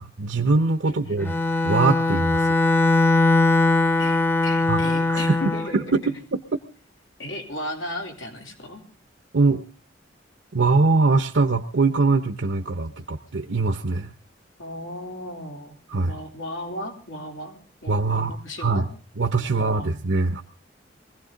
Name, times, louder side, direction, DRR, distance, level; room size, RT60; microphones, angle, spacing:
voice 1, 0.0-1.3 1.6-2.5 4.7-5.4 5.7-6.6 9.3-9.6 10.5-14.1 15.9-16.2 17.9-18.9 19.2-20.4, right 3 dB, 65° right, 7 dB, 0.7 m, -22 dB
voice 2, 0.8-1.3 4.0-6.1 7.2-8.8 14.6-15.7 16.1-18.9 19.4-19.9, left 1 dB, 90° left, 2 dB, 3.5 m, -35 dB
Bowed string instrument, 1.2-5.7, left 2 dB, 10° left, 0.7 m, -20 dB
21.0 x 16.0 x 3.8 m, 0.38 s
head